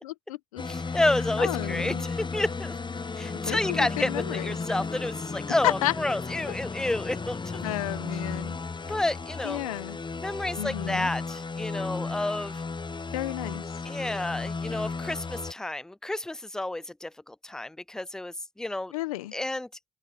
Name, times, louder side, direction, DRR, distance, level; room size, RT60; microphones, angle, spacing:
voice 1, 0.0-1.0 1.4-2.1 3.4-4.6 5.6-5.9 7.6-8.6 9.4-10.0 10.6-11.1 13.1-13.6 18.9-19.3, left 16 dB, 90° left, 1.1 m, -32 dB
sound 1, 0.6-15.5, left 4 dB, 25° left, 0.9 m, -34 dB
voice 2, 0.7-2.7 3.2-7.4 8.9-9.6 10.2-12.6 13.9-18.9 19.3-19.7, left 2 dB, 5° left, 0.3 m, -30 dB
open air
hypercardioid pair, 45°, 18 cm